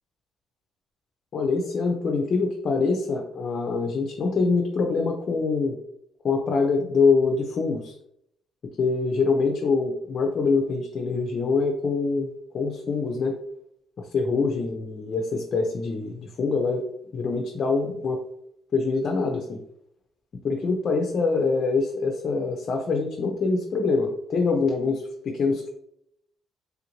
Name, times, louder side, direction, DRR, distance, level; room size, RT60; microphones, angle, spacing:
voice 1, 1.3-5.8 6.2-7.9 8.8-12.3 12.5-13.4 14.0-16.8 17.1-18.2 18.7-19.6 20.4-25.7, left 4 dB, 50° left, 2 dB, 0.5 m, -24 dB
3.4 x 2.5 x 3.0 m, 0.74 s
cardioid pair, 100°, 0 cm